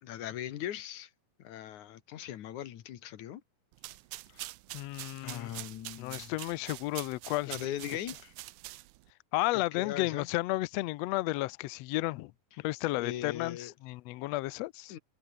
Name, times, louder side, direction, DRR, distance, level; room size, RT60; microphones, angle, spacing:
voice 1, 0.0-1.1 1.4-3.4 5.2-6.3 7.5-8.3 9.5-10.3 12.6-12.7 13.0-13.7 14.9-15.0, left 11 dB, 70° left, 2.8 m, -40 dB
sound 1, 3.7-9.1, right 18 dB, 80° right, 2.0 m, -45 dB
voice 2, 4.7-5.5 6.0-7.5 9.3-12.3 12.6-14.9, left 19 dB, 85° left, 1.5 m, -33 dB
omnidirectional pair, 3.7 m